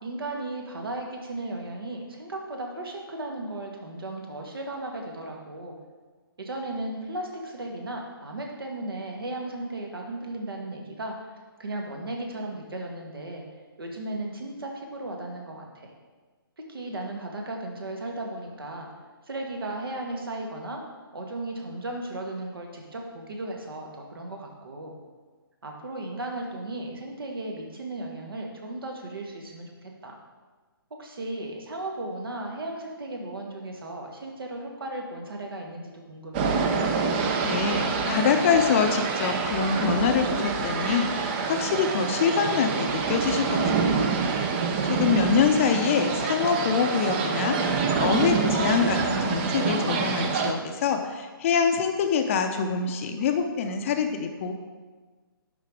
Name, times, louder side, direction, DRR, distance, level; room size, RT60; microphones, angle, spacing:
voice 1, 0.0-5.8 6.4-13.4 13.8-15.9 16.7-18.9 19.2-20.8 21.1-25.0 25.6-30.1 31.0-36.5, right 2 dB, 70° right, 1 dB, 1.8 m, -35 dB
sound 1, 36.3-50.5, right 5 dB, 25° right, 0.6 m, -26 dB
voice 2, 37.4-44.2 44.8-54.5, left 6 dB, 35° left, 6 dB, 0.7 m, -25 dB
11.5 x 4.1 x 4.8 m, 1.3 s
figure-of-eight pair, 140°, 13 cm